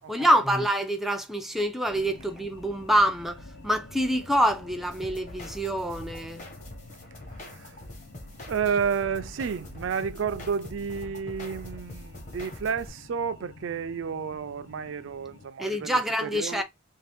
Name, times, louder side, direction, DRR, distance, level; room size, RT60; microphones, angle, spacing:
voice 1, 0.1-6.5 15.6-16.6, equal, ahead, 0.4 m, -26 dB
sound 1, 1.9-15.5, left 2 dB, 65° left, 0.9 m, -49 dB
sound 2, 4.9-12.9, left 1 dB, 40° left, 1.1 m, -43 dB
voice 2, 7.4-7.8 8.5-16.6, right 6 dB, 75° right, 0.4 m, -31 dB
2.6 x 2.4 x 3.4 m
head